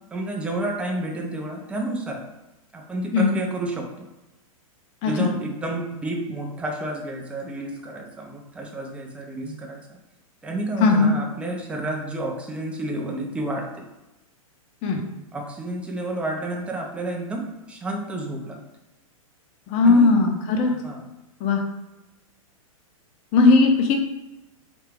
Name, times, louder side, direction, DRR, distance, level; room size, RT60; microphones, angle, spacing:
voice 1, 0.1-2.2 2.7-4.1 5.0-10.0 10.4-13.9 15.3-18.6 19.8-20.2 20.6-21.1, right 1 dB, 5° right, 0 dB, 0.5 m, -30 dB
voice 2, 5.0-5.3 9.4-9.5 10.8-11.1 14.8-15.0 19.7-20.7 21.4-21.6 23.3-24.0, left 4 dB, 35° left, 3 dB, 0.8 m, -18 dB
3.4 x 2.8 x 3.3 m, 1.0 s
hypercardioid pair, 115°, 18 cm